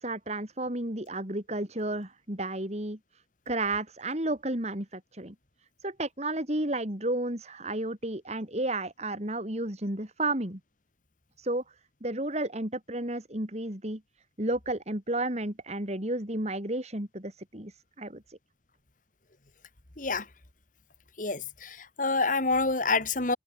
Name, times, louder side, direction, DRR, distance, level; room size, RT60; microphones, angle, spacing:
voice 1, 0.0-3.0 3.5-5.3 5.8-10.6 11.4-11.6 12.0-14.0 14.4-18.4, right 2 dB, 40° right, 3.6 m, -32 dB
voice 2, 21.2-23.4, left 3 dB, 50° left, 2.7 m, -27 dB
open air
head